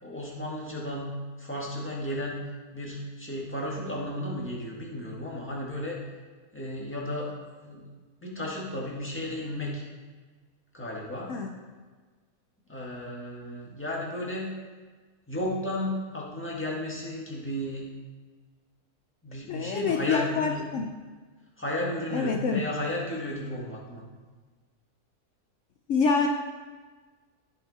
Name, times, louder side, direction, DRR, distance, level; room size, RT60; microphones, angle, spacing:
voice 1, 0.0-1.1 1.4-2.4 2.7-6.0 6.5-7.3 7.6-7.9 8.2-9.8 10.7-11.4 12.7-14.5 15.3-17.9 19.2-20.6 21.6-24.0, left 1 dB, 10° left, -4 dB, 1.8 m, -33 dB
voice 2, 19.5-20.9 22.1-22.6 25.9-26.3, left 5 dB, 65° left, 2 dB, 1.0 m, -26 dB
14.5 x 5.7 x 4.2 m, 1.4 s
omnidirectional pair, 1.5 m